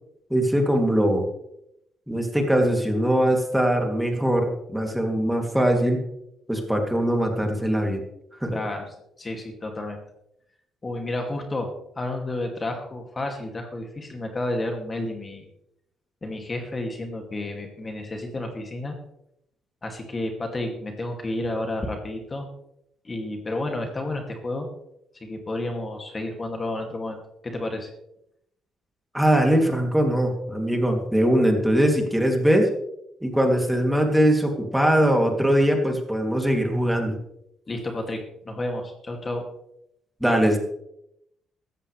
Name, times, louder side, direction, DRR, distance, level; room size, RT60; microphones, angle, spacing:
voice 1, 0.3-1.2 2.1-6.0 6.5-8.0 8.4-8.5 29.1-32.7 33.2-37.1 40.2-40.6, equal, 5° right, 2 dB, 2.8 m, -21 dB
voice 2, 8.5-10.0 10.8-11.7 12.0-15.5 16.2-18.9 19.8-22.5 23.0-24.7 25.1-27.9 37.7-39.5, left 2 dB, 30° left, 3 dB, 2.5 m, -31 dB
15.5 x 14.0 x 3.4 m, 0.78 s
cardioid pair, 90°, 0 cm